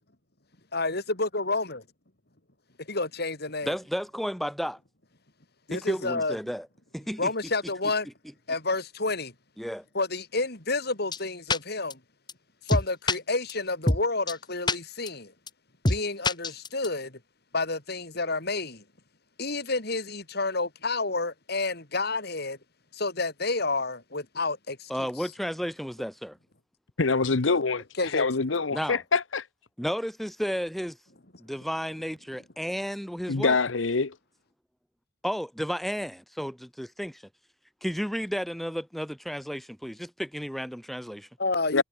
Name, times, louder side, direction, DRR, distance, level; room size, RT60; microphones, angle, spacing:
voice 1, 0.7-1.8 2.8-3.7 5.7-6.4 7.2-8.1 8.5-9.3 9.9-12.0 12.7-15.3 15.9-17.2 17.5-18.8 19.4-22.6 22.9-25.1 28.0-28.3 41.4-41.8, left 3 dB, 55° left, 4.5 m, -29 dB
voice 2, 3.6-4.8 5.7-6.7 6.9-7.3 9.6-9.8 24.9-26.4 28.7-29.0 29.8-31.0 31.4-33.6 35.2-37.2 37.8-41.3, equal, ahead, 2.2 m, -32 dB
sound 1, 11.1-11.2 11.5-11.6 11.9-12.0 12.3-12.4 12.7-13.2 13.5-13.6 13.9-14.0 14.3-14.4 14.7-14.8 15.1-15.2 15.5-15.6 15.8-16.0 16.2-16.9, left 2 dB, 25° left, 1.7 m, -24 dB
voice 3, 27.0-29.5 33.3-34.1 41.7-41.8, left 4 dB, 80° left, 1.0 m, -25 dB
head